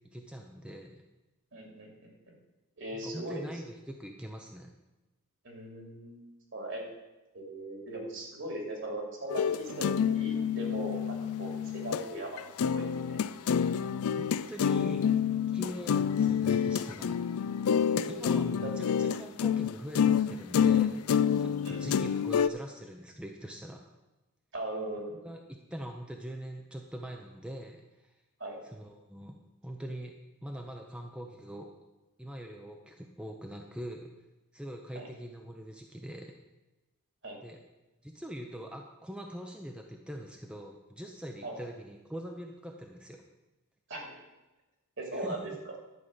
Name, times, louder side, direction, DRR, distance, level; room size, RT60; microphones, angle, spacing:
voice 1, 0.1-1.0 2.9-4.7 14.1-15.1 15.5-17.3 17.9-21.0 21.4-23.8 25.1-25.4 25.7-28.1 28.6-29.4 29.6-30.1 30.4-31.7 32.2-34.1 34.5-36.4 37.4-37.6 38.0-43.2 45.1-45.4, equal, 5° right, 2 dB, 0.6 m, -43 dB
voice 2, 1.5-2.3 2.8-3.5 5.4-6.2 6.5-6.8 7.3-12.4 12.7-13.2 17.9-18.5 21.4-22.0 24.5-25.3 28.4-28.6 34.9-35.1 37.2-37.4 41.4-41.6 43.9-44.1 45.0-45.5, right 1 dB, 55° right, 0 dB, 2.7 m, -39 dB
sound 1, 9.3-12.0 12.4-22.5, left 7 dB, 85° left, 0.4 m, -28 dB
11.0 x 4.9 x 7.6 m, 1.1 s
head